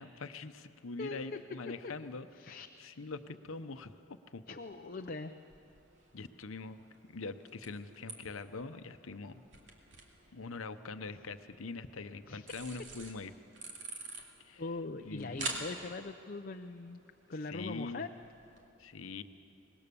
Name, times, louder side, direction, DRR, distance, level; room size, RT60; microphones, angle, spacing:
voice 1, 0.0-4.4 6.1-6.8 7.1-9.3 10.3-13.3 14.4-14.6 15.0-15.6 17.5-18.1 18.8-19.2, left 3 dB, 90° left, 10 dB, 0.8 m, -43 dB
voice 2, 1.0-1.4 1.7-1.9 2.3-2.7 4.5-5.3 11.1-11.2 12.2-12.5 14.6-17.0 17.3-18.1, left 3 dB, 45° left, 6 dB, 0.6 m, -41 dB
sound 1, 4.6-18.7, right 3 dB, 60° right, 2.6 m, -49 dB
24.5 x 20.0 x 6.9 m, 2.7 s
head